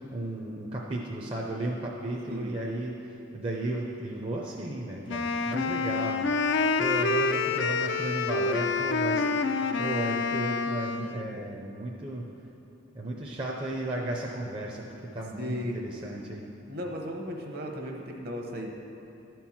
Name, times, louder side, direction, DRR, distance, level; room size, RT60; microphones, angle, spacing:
voice 1, 0.1-9.3 9.8-12.2 12.9-16.4, right 1 dB, 25° right, -2 dB, 0.6 m, -34 dB
Wind instrument woodwind instrument, 5.1-11.3, left 4 dB, 65° left, 0.4 m, -27 dB
voice 2, 15.4-15.8 16.7-18.7, equal, 50° right, 1 dB, 1.1 m, -36 dB
12.0 x 4.5 x 7.3 m, 2.8 s
head